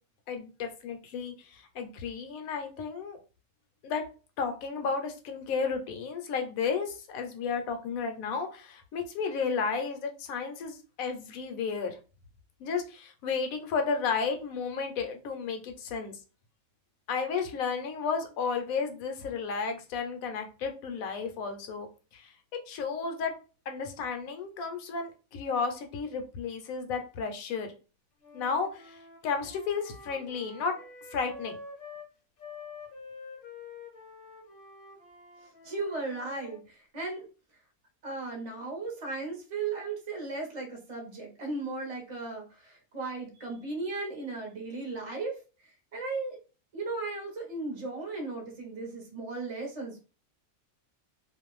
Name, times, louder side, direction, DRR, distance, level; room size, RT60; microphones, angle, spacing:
voice 1, 0.3-3.2 3.8-4.0 4.4-12.0 12.6-16.2 17.1-21.9 22.1-22.3 22.7-23.3 23.7-27.7 28.3-30.8 31.1-31.6, left 5 dB, 75° left, 5 dB, 1.0 m, -33 dB
Wind instrument woodwind instrument, 28.2-32.1 32.4-36.6, left 4 dB, 50° left, 0.8 m, -48 dB
voice 2, 35.6-37.3 38.0-46.4 46.7-50.0, right 3 dB, 30° right, 0 dB, 0.7 m, -36 dB
2.5 x 2.2 x 3.0 m, 0.34 s
omnidirectional pair, 1.5 m